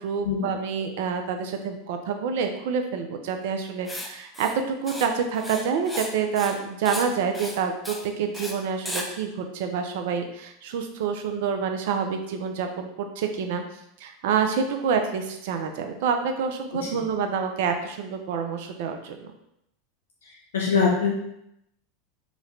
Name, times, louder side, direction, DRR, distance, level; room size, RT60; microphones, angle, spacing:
voice 1, 0.0-13.6 14.0-19.3, right 6 dB, 70° right, 5 dB, 0.4 m, -27 dB
Writing, 3.9-4.1 4.3-4.6 4.9-5.1 5.3-6.1 6.4-6.6 6.8-7.1 7.3-7.6 7.8-8.0 8.3-8.5 8.9-9.1, left 1 dB, 5° left, 0.5 m, -34 dB
voice 2, 20.2-21.1, left 5 dB, 85° left, -2 dB, 0.5 m, -24 dB
2.9 x 2.5 x 3.2 m, 0.78 s
hypercardioid pair, 95°, 0 cm